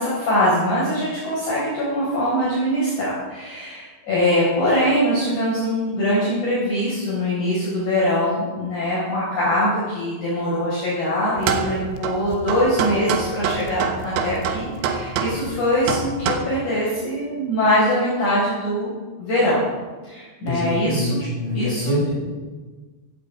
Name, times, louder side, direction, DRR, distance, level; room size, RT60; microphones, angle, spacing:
voice 1, 0.0-18.9 19.2-19.6 20.0-21.2 21.5-21.8, equal, 40° left, -8 dB, 5.8 m, -22 dB
sound 1, 11.4-16.4, right 6 dB, 75° right, 3.4 m, -25 dB
voice 2, 20.5-22.1, equal, 15° left, -4 dB, 5.1 m, -24 dB
16.0 x 15.0 x 4.8 m, 1.3 s
omnidirectional pair, 5.7 m